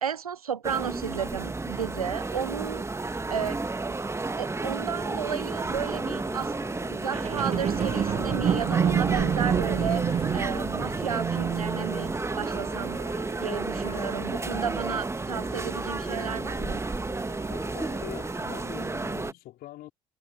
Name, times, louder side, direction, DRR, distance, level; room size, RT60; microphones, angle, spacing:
voice 1, 0.0-3.6 4.4-6.5 6.9-12.1 12.4-13.0 13.4-16.8, right 7 dB, 85° right, 0.8 m, -33 dB
sound 1, 0.6-19.3, right 3 dB, 15° right, 1.6 m, -32 dB
sound 2, 5.7-18.6, left 7 dB, 35° left, 1.6 m, -46 dB
sound 3, 7.1-14.6 15.1-15.2, right 8 dB, 35° right, 1.4 m, -29 dB
voice 2, 17.5-19.9, left 15 dB, 55° left, 3.9 m, -43 dB
figure-of-eight pair, 55°, 18 cm